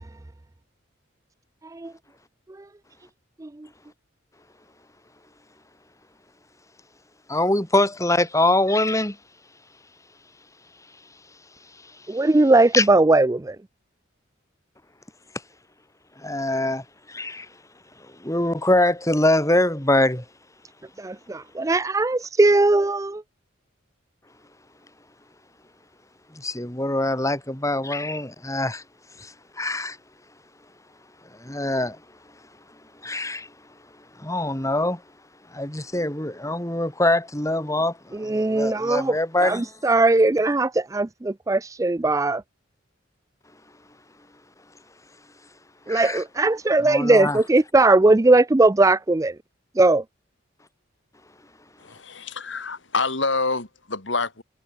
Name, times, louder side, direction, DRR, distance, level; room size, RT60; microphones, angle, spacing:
voice 1, 7.3-9.2 12.7-12.9 16.2-17.5 18.2-20.2 26.3-28.8 29.2-30.0 31.4-32.0 33.0-33.5 34.2-35.0 35.5-39.7 45.9-46.2 46.8-47.4, left 1 dB, 15° left, 4.2 m, -24 dB
voice 2, 12.1-13.6 21.0-23.2 38.2-39.2 39.4-42.4 45.9-49.3 49.8-50.0, right 2 dB, 15° right, 0.4 m, -19 dB
voice 3, 51.8-54.4, left 3 dB, 65° left, 2.6 m, -27 dB
head